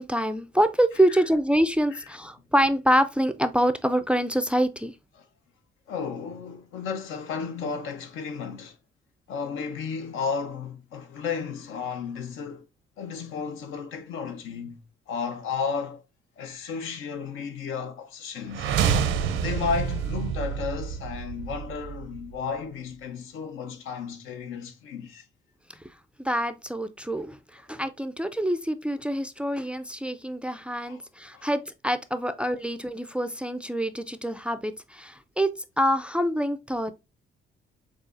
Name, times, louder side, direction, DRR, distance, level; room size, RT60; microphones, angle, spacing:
voice 1, 0.0-4.9 26.2-37.0, equal, 5° right, 0.3 m, -26 dB
voice 2, 5.9-8.8 9.3-12.6 13.0-14.8 15.1-16.0 16.4-18.7 19.4-25.3 30.8-31.0 31.3-31.4, left 5 dB, 85° left, 0.8 m, -33 dB
sound 1, 18.5-22.5, right 7 dB, 85° right, 0.6 m, -28 dB
6.4 x 2.4 x 2.5 m
cardioid pair, 90°, 20 cm